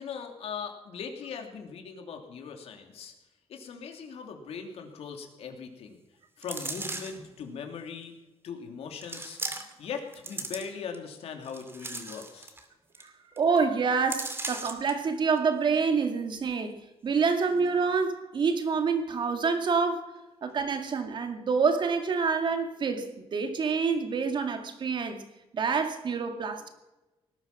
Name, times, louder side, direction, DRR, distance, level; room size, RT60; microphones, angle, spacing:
voice 1, 0.0-3.1 3.5-6.0 6.4-8.1 8.4-9.4 9.8-12.5, left 6 dB, 80° left, 4 dB, 3.0 m, -40 dB
sound 1, 6.4-7.3 8.0-8.1 9.0-9.8 10.1-10.9 11.4-12.6 12.9-13.1 13.4-13.6 14.1-14.9 15.4-15.5, right 2 dB, 25° right, 2.4 m, -37 dB
voice 2, 13.4-16.8 17.0-20.1 20.4-25.2 25.5-26.7, right 5 dB, 50° right, 6 dB, 2.2 m, -27 dB
19.0 x 12.5 x 6.1 m, 1.0 s
cardioid pair, 130°, 10 cm